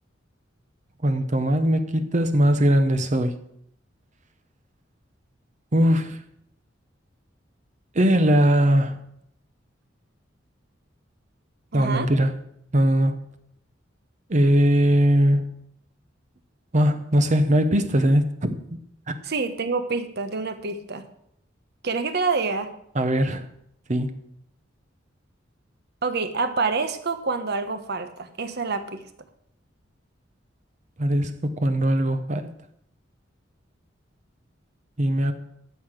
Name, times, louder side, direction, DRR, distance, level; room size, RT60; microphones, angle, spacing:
voice 1, 1.0-3.3 5.7-6.2 7.9-9.0 11.7-12.3 12.7-13.2 14.3-15.5 16.7-18.8 19.1-19.2 22.9-23.4 23.9-24.1 31.0-32.5 35.0-35.3, equal, 40° right, 0.9 m, -20 dB
voice 2, 11.7-12.1 19.2-21.0 21.8-22.7 26.0-29.0, right 4 dB, 60° right, 1.2 m, -27 dB
12.5 x 7.8 x 6.4 m
head